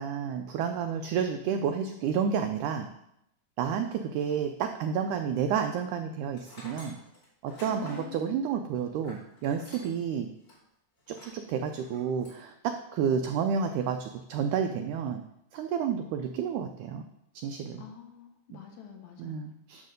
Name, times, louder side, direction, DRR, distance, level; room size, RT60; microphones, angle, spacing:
voice 1, 0.0-2.9 3.6-7.0 7.4-10.3 11.1-15.2 15.5-17.1 17.4-17.8 18.5-18.6 19.2-19.8, right 7 dB, 90° right, 6 dB, 1.7 m, -30 dB
Tools, 6.3-10.1 10.4-10.6 11.1-11.4 11.8-12.4, left 1 dB, 30° left, 3.1 m, -49 dB
voice 2, 7.7-8.6 17.8-19.9, left 5 dB, 65° left, 2 dB, 2.1 m, -46 dB
10.5 x 3.7 x 6.4 m, 0.79 s
omnidirectional pair, 4.1 m